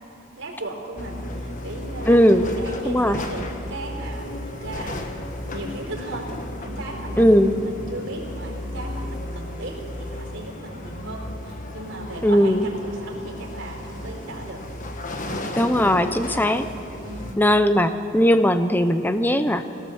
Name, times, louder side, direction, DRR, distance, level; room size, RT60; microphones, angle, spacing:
voice 1, 0.4-5.2 5.5-6.3 6.6-14.6 15.2-15.5 17.0-17.4, right 2 dB, 65° right, 0 dB, 4.2 m, -36 dB
sound 1, 1.0-17.3, left 1 dB, 40° left, 1.4 m, -34 dB
voice 2, 2.1-2.4 2.9-3.2 7.2-7.5 12.2-12.6 15.6-16.6 17.4-19.7, equal, 10° left, 10 dB, 0.7 m, -18 dB
22.0 x 17.0 x 7.2 m, 2.9 s
head